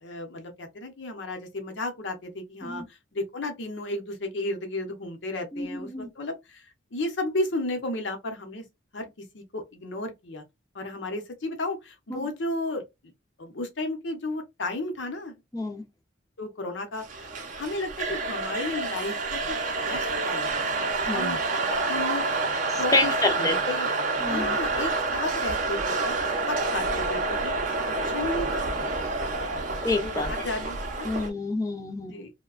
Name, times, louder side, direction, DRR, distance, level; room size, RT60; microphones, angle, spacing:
voice 1, 0.0-8.6 8.9-9.1 9.3-10.4 10.7-12.8 13.4-15.4 16.4-17.3 17.6-19.6 19.8-20.7 21.1-21.4 21.9-22.3 22.8-23.9 24.2-27.5 27.9-28.6 30.0-31.2 32.1-32.3, left 2 dB, 70° left, 0.8 m, -33 dB
voice 2, 5.5-6.1 12.1-12.3 15.5-15.8 21.1-21.4 22.7-23.7 24.2-24.8 29.8-30.5 31.0-32.3, left 2 dB, 20° left, 0.5 m, -29 dB
sound 1, 17.0-31.3, right 3 dB, 40° right, 0.5 m, -28 dB
2.8 x 2.1 x 2.4 m
head